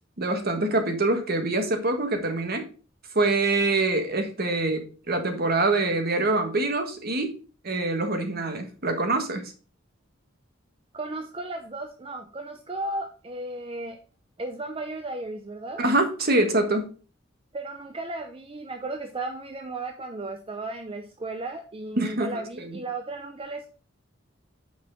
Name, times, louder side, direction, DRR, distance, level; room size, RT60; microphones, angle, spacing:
voice 1, 0.2-2.7 3.1-7.4 7.6-9.5 15.8-16.9 22.0-22.8, right 2 dB, 50° right, 6 dB, 1.5 m, -25 dB
voice 2, 10.9-14.0 14.4-15.8 17.5-23.7, right 2 dB, 30° right, 5 dB, 0.6 m, -35 dB
6.2 x 4.8 x 5.6 m, 0.38 s
head